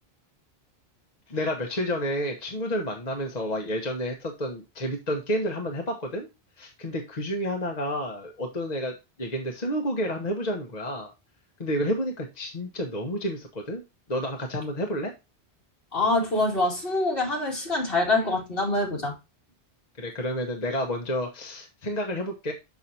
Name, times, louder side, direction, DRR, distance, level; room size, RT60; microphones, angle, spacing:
voice 1, 1.3-6.3 6.6-11.1 11.6-13.8 14.1-15.1 20.0-22.5, equal, 40° left, 1.2 m, -30 dB
voice 2, 15.9-19.1, left 2 dB, 65° left, 2.6 m, -25 dB
6.5 x 6.3 x 2.8 m
omnidirectional pair, 1.1 m